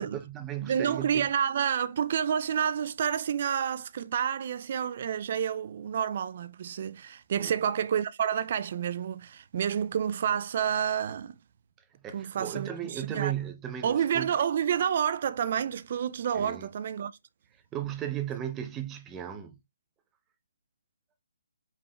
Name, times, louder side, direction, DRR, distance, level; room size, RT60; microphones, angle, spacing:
voice 1, 0.0-1.3 7.4-7.5 12.0-14.3 16.3-16.7 17.7-19.5, right 10 dB, 15° right, 0.7 m, -36 dB
voice 2, 0.6-11.4 12.1-13.3 13.8-17.2, right 8 dB, 45° right, 0.3 m, -29 dB
5.2 x 3.5 x 2.3 m
hypercardioid pair, 150°, 0 cm